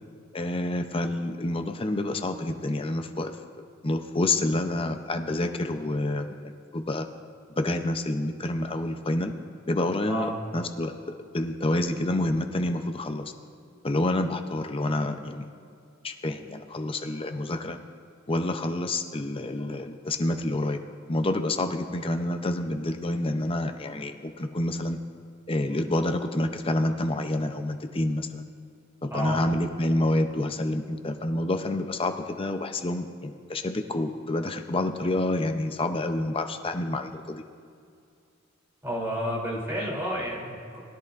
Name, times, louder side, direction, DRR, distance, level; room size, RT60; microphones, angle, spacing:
voice 1, 0.3-3.4 3.8-7.1 7.6-9.3 9.7-10.9 11.3-13.3 13.8-15.5 16.0-17.8 18.3-20.8 21.1-25.0 25.5-28.5 29.0-37.4, left 1 dB, 25° left, 6 dB, 0.6 m, -28 dB
voice 2, 38.8-40.8, equal, 15° right, -6 dB, 3.1 m, -30 dB
20.5 x 10.5 x 2.5 m, 2.4 s
head